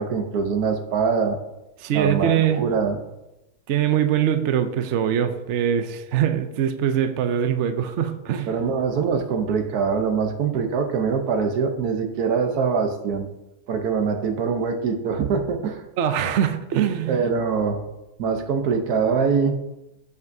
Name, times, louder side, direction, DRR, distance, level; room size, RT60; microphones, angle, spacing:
voice 1, 0.0-1.4 1.9-3.0 8.5-13.3 13.7-15.8 17.1-17.8 18.2-19.5, right 5 dB, 80° right, 5 dB, 1.4 m, -23 dB
voice 2, 1.8-2.6 3.7-8.5 16.0-17.2, right 9 dB, 60° right, 7 dB, 0.8 m, -22 dB
15.0 x 5.3 x 2.7 m, 0.96 s
omnidirectional pair, 1.6 m